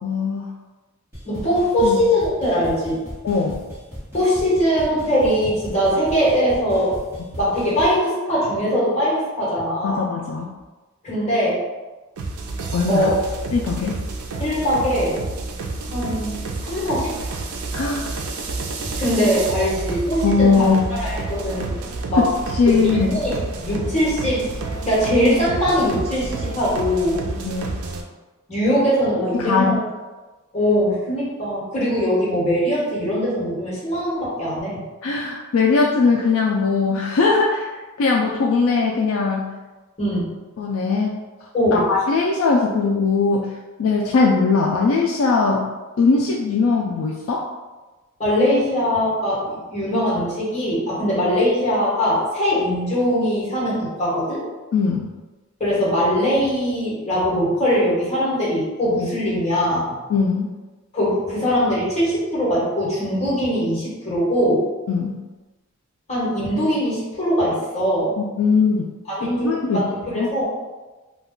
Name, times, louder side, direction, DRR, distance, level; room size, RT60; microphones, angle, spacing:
voice 1, 0.0-0.5 1.8-2.0 3.2-3.6 9.8-10.5 12.7-13.1 13.5-14.0 17.7-18.1 20.2-21.0 22.2-22.3 22.5-23.1 27.4-27.7 29.3-29.8 35.0-37.7 38.0-39.5 40.6-41.1 41.7-43.5 43.8-45.7 46.0-47.4 54.7-55.1 60.1-60.5 64.9-65.2 68.2-68.9 69.4-70.3, left 4 dB, 70° left, -1 dB, 0.3 m, -20 dB
sound 1, 1.1-8.0, equal, 10° right, 1.0 m, -37 dB
voice 2, 1.2-3.0 4.1-7.0 7.4-10.1 11.0-11.6 12.9-13.1 14.4-15.2 15.8-17.1 19.0-20.6 21.0-21.8 22.1-22.3 22.7-22.8 23.1-23.4 23.6-24.5 24.8-27.2 28.5-29.8 30.5-34.8 40.0-40.3 41.5-41.8 48.2-54.4 55.6-59.8 60.9-64.7 66.1-68.2 69.1-70.4, equal, 30° left, -8 dB, 1.2 m, -21 dB
sound 2, 12.2-28.0, right 3 dB, 85° right, 0.4 m, -29 dB
2.3 x 2.3 x 3.6 m, 1.2 s
head